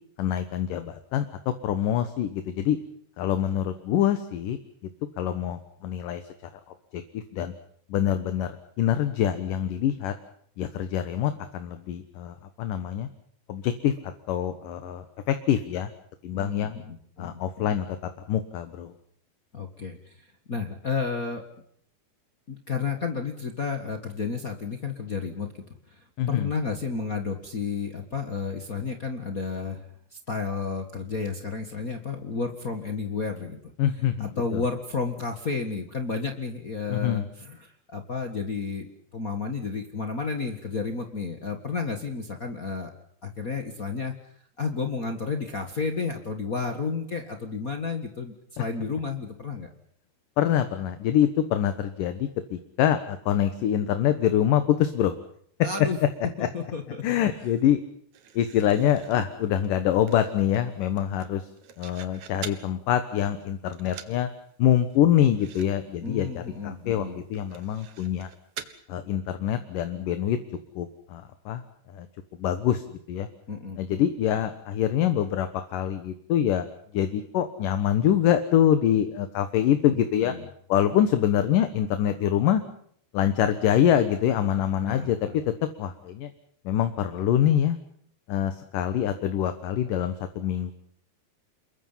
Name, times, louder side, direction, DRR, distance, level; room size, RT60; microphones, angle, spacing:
voice 1, 0.2-2.8 3.2-4.6 5.2-6.2 6.9-7.5 7.9-10.1 10.6-13.1 13.5-13.9 14.3-15.9 16.2-16.8 17.2-17.9 18.3-18.9 26.2-26.5 33.8-34.6 36.9-37.3 48.6-48.7 50.4-55.2 55.6-55.9 56.4-56.5 57.0-57.8 58.3-61.5 61.8-64.3 64.6-68.3 68.9-70.4 70.8-71.6 71.9-72.1 72.4-73.3 73.8-76.7 76.9-80.3 80.7-82.6 83.1-85.2 85.5-86.3 86.6-87.8 88.3-90.7, left 10 dB, 65° left, 9 dB, 2.5 m, -25 dB
voice 2, 16.3-17.7 19.5-21.4 22.5-25.5 25.9-29.8 30.1-33.6 34.2-42.9 43.2-44.1 44.6-49.7 55.6-56.0 56.4-57.0 66.0-67.2 73.5-74.0 79.9-80.4 84.8-85.4, left 4 dB, 80° left, 5 dB, 0.7 m, -32 dB
sound 1, 58.1-62.7 63.1-63.5 63.7-64.2 64.5-64.6 64.9-65.0 65.3-65.7 65.9-66.1 66.5-66.6 67.3-68.7, right 9 dB, 60° right, 2.4 m, -44 dB
28.5 x 22.5 x 5.7 m, 0.65 s
omnidirectional pair, 4.7 m